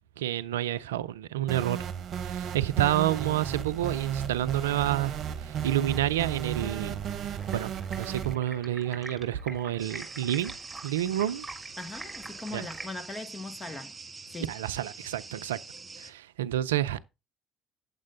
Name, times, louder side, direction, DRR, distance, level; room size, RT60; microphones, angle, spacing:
voice 1, 0.2-1.8 2.2-7.0 7.5-7.7 8.0-10.5 10.8-11.5 12.5-12.7 14.5-15.6 16.0-17.0, right 12 dB, 85° right, 0.4 m, -29 dB
sound 1, 1.5-8.3, right 8 dB, 55° right, 0.9 m, -34 dB
Stream, 7.4-12.9, right 2 dB, 10° right, 3.2 m, -45 dB
sound 2, 9.8-16.1, right 4 dB, 25° right, 2.4 m, -44 dB
voice 2, 11.8-13.9 14.3-14.5, left 2 dB, 25° left, 2.0 m, -39 dB
9.6 x 7.5 x 3.7 m
hypercardioid pair, 60°, 0 cm